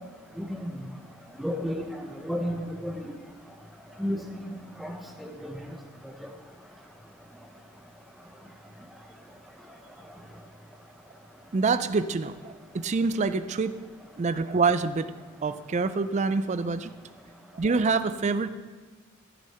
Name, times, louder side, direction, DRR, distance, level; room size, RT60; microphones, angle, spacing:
voice 1, 0.4-0.7 1.4-1.8 2.2-3.1 4.0-4.3 4.8-4.9 5.2-5.5, equal, ahead, 2 dB, 0.8 m, -31 dB
voice 2, 11.5-13.7 14.2-15.1 15.4-16.9 17.5-18.5, right 4 dB, 35° right, 12 dB, 0.4 m, -26 dB
14.0 x 6.4 x 4.3 m, 1.4 s
head